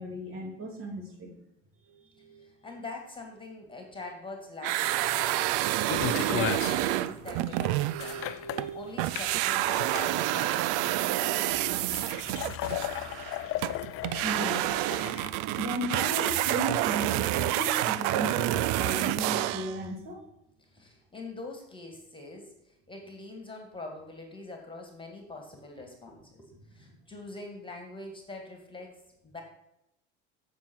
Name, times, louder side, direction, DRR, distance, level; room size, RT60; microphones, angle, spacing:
voice 1, 0.0-1.4 1.9-2.5 7.6-9.0 14.2-14.7 15.6-20.2 26.5-26.8, equal, 40° right, 0 dB, 2.9 m, -36 dB
voice 2, 2.4-8.2 8.7-11.6 20.6-29.4, left 2 dB, 15° left, 3 dB, 2.0 m, -44 dB
sound 1, 4.6-8.7 9.0-19.8, right 15 dB, 65° right, 0.5 m, -28 dB
sound 2, 5.9-15.3, left 13 dB, 45° left, 0.5 m, -36 dB
7.4 x 7.1 x 4.6 m, 0.83 s
hypercardioid pair, 85°, 33 cm